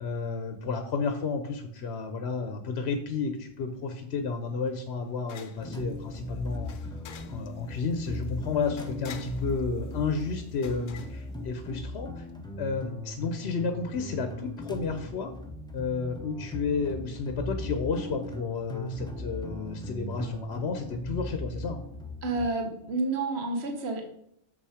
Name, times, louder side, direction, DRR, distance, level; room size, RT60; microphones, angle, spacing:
voice 1, 0.0-7.0 7.3-12.3 12.6-15.3 15.7-21.8, left 4 dB, 60° left, 7 dB, 1.0 m, -32 dB
sound 1, 3.7-12.1, left 7 dB, 85° left, 1.1 m, -51 dB
sound 2, 5.6-22.5, left 2 dB, 5° left, 0.6 m, -38 dB
voice 2, 22.2-24.0, right 2 dB, 55° right, 4 dB, 1.4 m, -29 dB
6.9 x 5.7 x 4.9 m, 0.71 s
omnidirectional pair, 1.3 m